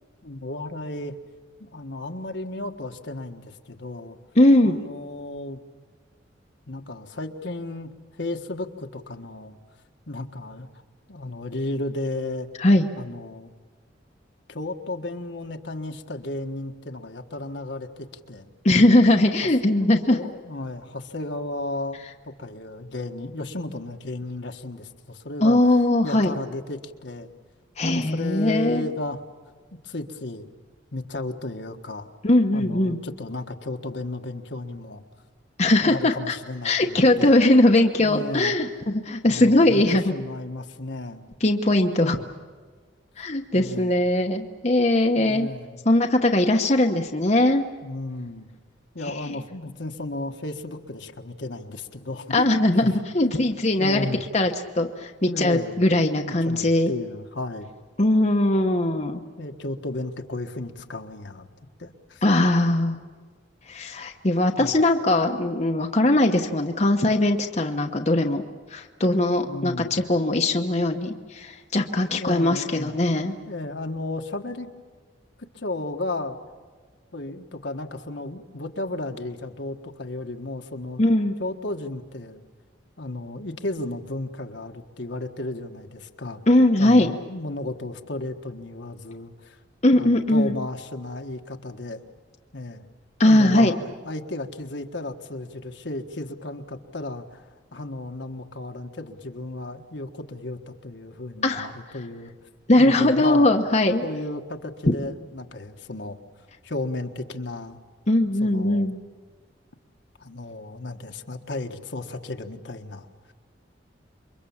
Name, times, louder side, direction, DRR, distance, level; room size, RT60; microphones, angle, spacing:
voice 1, 0.2-1.1 1.6-4.2 4.6-5.6 6.7-7.9 8.2-9.5 10.1-10.7 11.1-12.5 13.0-13.5 14.5-18.5 20.1-25.6 26.0-27.3 27.8-29.2 29.8-30.5 30.9-32.1 32.5-35.0 35.6-37.4 38.0-38.6 39.2-41.3 43.5-44.0 45.1-45.8 47.8-48.5 48.9-52.9 53.2-53.4 53.8-54.2 55.2-55.8 56.3-57.7 59.4-61.5 61.8-62.2 64.6-64.7 69.5-70.1 72.1-72.9 73.5-74.7 75.4-76.4 77.1-81.0 81.4-82.4 83.0-86.4 86.8-89.6 89.9-92.0 92.5-92.8 93.2-102.3 102.8-103.5 104.0-106.2 106.6-107.8 108.4-108.9 110.2-113.3, left 2 dB, 70° left, 5 dB, 1.5 m, -34 dB
voice 2, 4.3-4.8 12.6-12.9 18.6-20.2 25.4-26.3 27.8-28.8 32.2-33.0 35.6-36.4 36.6-40.1 41.4-42.2 43.2-45.5 45.8-47.7 49.0-49.4 52.3-54.1 54.3-56.9 58.0-59.2 62.2-63.0 63.7-68.4 68.7-73.4 81.0-81.3 86.5-87.1 89.8-90.5 93.2-93.7 101.4-101.7 102.7-104.0 108.1-109.0, left 1 dB, 35° left, 3 dB, 1.0 m, -20 dB
28.0 x 23.5 x 7.2 m, 1.5 s
head